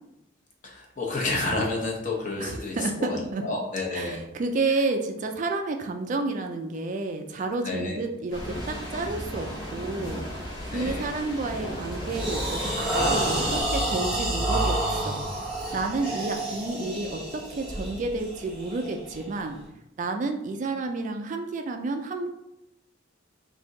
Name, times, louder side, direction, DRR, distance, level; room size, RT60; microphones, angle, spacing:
voice 1, 0.6-2.8 3.1-4.2 7.6-8.0 10.7-11.1, left 2 dB, 40° left, -1 dB, 0.9 m, -30 dB
voice 2, 2.4-3.4 3.9-19.6 20.0-22.3, right 3 dB, 40° right, 5 dB, 0.3 m, -31 dB
sound 1, 8.3-13.6, equal, 20° left, 1.1 m, -34 dB
sound 2, 10.0-10.3 10.8-11.1 11.5-19.6, right 1 dB, 5° right, 1.1 m, -29 dB
3.5 x 2.7 x 3.8 m, 0.88 s
head